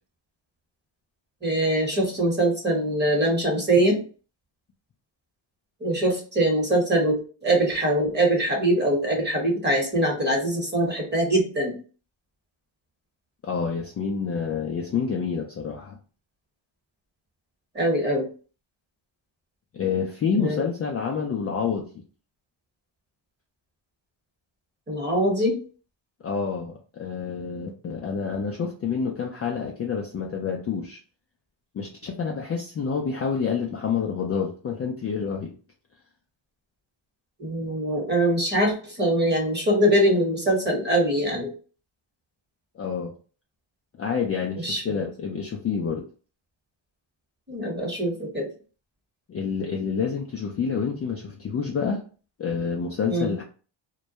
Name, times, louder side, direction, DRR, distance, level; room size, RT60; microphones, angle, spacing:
voice 1, 1.4-4.0 5.8-11.7 17.7-18.3 20.3-20.6 24.9-25.6 37.4-41.5 44.6-44.9 47.5-48.5 53.1-53.4, right 1 dB, 20° right, 0 dB, 1.0 m, -23 dB
voice 2, 13.4-16.0 19.7-21.9 26.2-31.0 31.7-35.6 42.8-43.1 44.0-46.1 49.3-52.0 52.4-53.4, left 6 dB, 30° left, 0 dB, 0.4 m, -28 dB
2.2 x 2.1 x 2.7 m, 0.38 s
cardioid pair, 85°, 48 cm